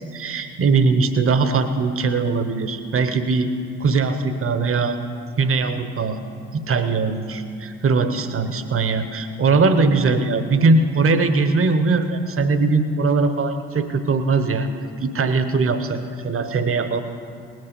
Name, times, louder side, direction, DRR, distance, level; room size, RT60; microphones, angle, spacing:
voice 1, 0.0-3.5 3.8-5.0 5.4-6.2 6.5-14.7 15.0-17.0, right 4 dB, 40° right, 10 dB, 1.1 m, -20 dB
19.0 x 6.4 x 6.9 m, 2.3 s
hypercardioid pair, 45°, 33 cm